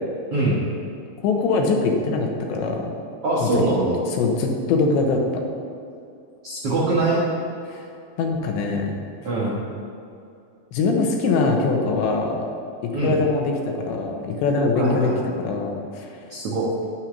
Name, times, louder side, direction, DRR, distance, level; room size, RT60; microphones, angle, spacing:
voice 1, 1.2-2.9 3.4-3.5 4.1-5.2 7.7-7.8 8.2-8.9 10.7-12.4 13.0-13.5 13.9-15.1 15.4-16.2, left 4 dB, 85° left, 2 dB, 3.4 m, -22 dB
voice 2, 3.2-4.0 6.4-7.2 9.2-9.6 12.9-13.2 14.7-15.2 16.3-16.7, right 2 dB, 70° right, -5 dB, 1.4 m, -23 dB
9.6 x 6.1 x 8.6 m, 2.6 s
omnidirectional pair, 5.1 m